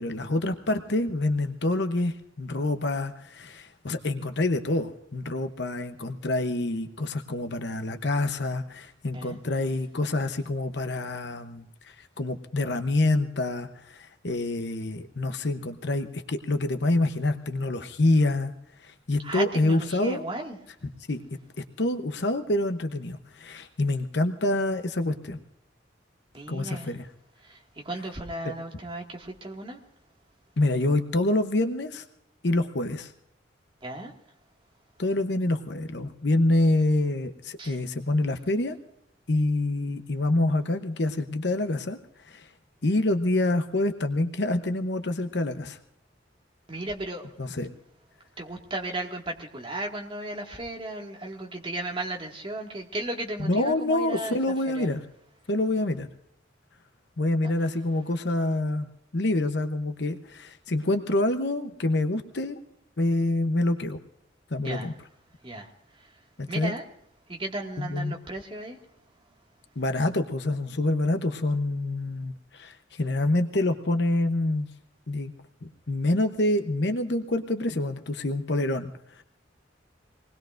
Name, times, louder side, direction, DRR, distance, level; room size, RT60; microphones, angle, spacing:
voice 1, 0.0-18.5 18.8-20.2 21.1-21.2 21.8-25.4 26.5-27.1 28.4-28.5 30.6-32.0 32.4-33.1 35.0-38.8 39.3-42.0 42.2-42.5 42.8-45.8 47.4-47.7 53.5-55.0 55.5-56.1 57.2-58.9 59.1-62.6 63.0-64.0 64.5-64.9 66.4-66.7 67.8-68.1 69.8-74.7 75.1-75.3 75.6-79.2, left 2 dB, 60° left, 8 dB, 0.9 m, -26 dB
voice 2, 19.2-20.6 26.3-26.9 27.4-29.8 33.8-34.1 37.6-37.8 46.7-47.3 48.4-54.4 54.7-54.9 57.6-57.7 64.6-64.9 65.4-66.2 66.5-66.8 67.3-68.8, right 2 dB, 30° right, 0 dB, 2.0 m, -35 dB
26.0 x 20.0 x 2.6 m, 0.75 s
head